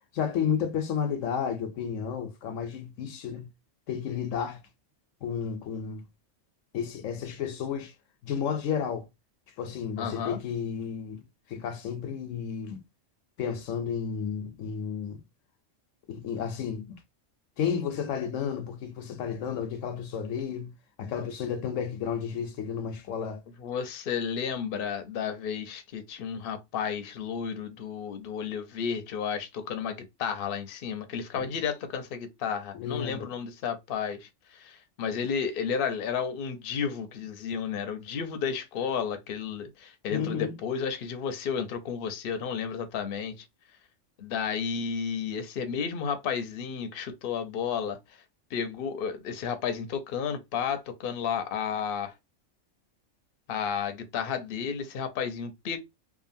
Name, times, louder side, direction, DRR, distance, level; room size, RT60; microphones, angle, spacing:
voice 1, 0.1-3.5 3.9-4.6 5.2-6.0 6.7-7.9 8.2-9.1 9.6-12.8 13.4-15.2 16.1-16.9 17.6-20.7 21.0-23.4 31.3-31.5 32.7-33.3 40.1-40.6, left 7 dB, 85° left, 1.0 m, -32 dB
voice 2, 10.0-10.4 23.6-43.4 44.2-48.0 48.5-52.1 53.5-55.8, left 7 dB, 55° left, 0.7 m, -32 dB
2.8 x 2.5 x 2.5 m
omnidirectional pair, 1.3 m